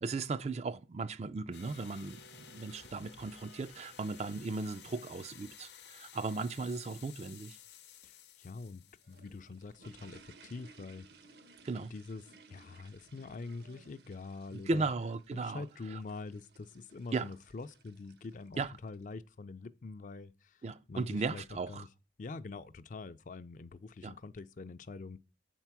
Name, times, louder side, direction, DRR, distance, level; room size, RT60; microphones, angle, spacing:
voice 1, 0.0-7.6 11.6-11.9 14.7-15.6 17.1-17.3 18.6-18.7 20.6-21.8 24.0-24.1, right 3 dB, 35° right, 0.3 m, -36 dB
sound 1, 1.5-9.8, left 8 dB, 70° left, 0.8 m, -54 dB
voice 2, 8.0-11.1 11.9-12.2 12.5-14.9 15.3-21.9 22.2-25.2, left 3 dB, 45° left, 0.4 m, -45 dB
sound 2, 8.9-19.0, right 4 dB, 65° right, 0.8 m, -60 dB
Human voice, 13.2-14.9, right 2 dB, 80° right, 1.7 m, -65 dB
7.5 x 4.5 x 5.9 m
head